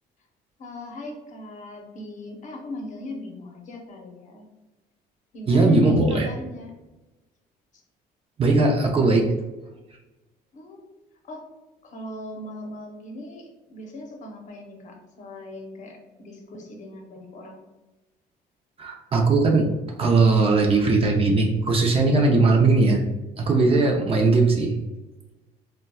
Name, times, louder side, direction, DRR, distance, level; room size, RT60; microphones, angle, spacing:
voice 1, 0.6-4.4 5.3-6.7 10.5-10.9 11.2-11.4 11.8-17.6 23.7-23.9, left 2 dB, 45° left, 2 dB, 0.8 m, -38 dB
voice 2, 5.5-6.3 8.4-9.3 18.8-19.7 20.0-23.0 23.4-24.8, right 3 dB, 35° right, 1 dB, 0.5 m, -19 dB
3.9 x 2.2 x 2.3 m, 1.1 s
cardioid pair, 110°, 17 cm